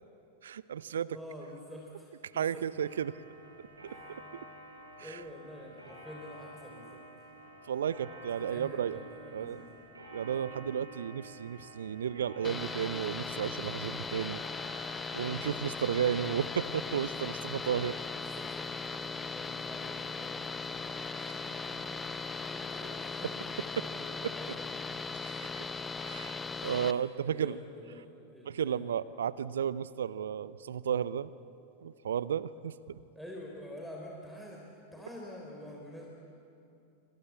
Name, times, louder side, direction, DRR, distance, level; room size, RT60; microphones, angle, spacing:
voice 1, 0.4-1.2 2.3-3.2 4.1-4.2 5.0-5.1 7.7-9.0 9.3-9.7 10.1-14.4 14.7-14.8 15.1-18.0 25.2-25.6 26.0-27.5 28.5-31.3 31.8-33.0, right 8 dB, 65° right, 18 dB, 0.7 m, -33 dB
voice 2, 1.1-2.6 3.8-4.2 5.0-7.0 8.4-9.8 10.6-10.8 18.4-20.8 21.2-23.3 23.7-24.8 26.5-28.8 33.1-36.1, left 1 dB, ahead, -1 dB, 3.7 m, -48 dB
Clock, 2.6-18.8, right 1 dB, 80° right, 7.4 m, -51 dB
sound 1, 12.4-26.9, left 4 dB, 15° left, 0.9 m, -38 dB
26.0 x 25.0 x 8.6 m, 2.6 s
figure-of-eight pair, 90°, 0 cm